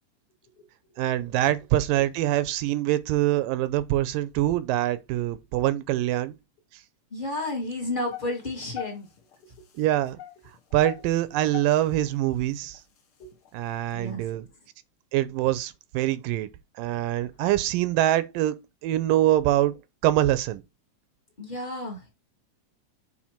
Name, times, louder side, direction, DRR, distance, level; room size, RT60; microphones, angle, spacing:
voice 1, 1.0-6.3 9.8-10.2 10.7-12.8 13.5-14.4 15.1-16.5 16.8-18.6 18.8-19.7 20.0-20.6, right 14 dB, 85° right, 2.3 m, -24 dB
voice 2, 7.1-9.1 9.4-9.5 13.2-13.3 13.9-14.2 21.4-22.1, left 1 dB, 20° left, 1.6 m, -32 dB
sound 1, 8.1-9.3 9.8-12.1 12.6-12.8 13.3-13.5, left 14 dB, 60° left, 1.6 m, -38 dB
7.3 x 4.0 x 4.4 m
omnidirectional pair, 3.9 m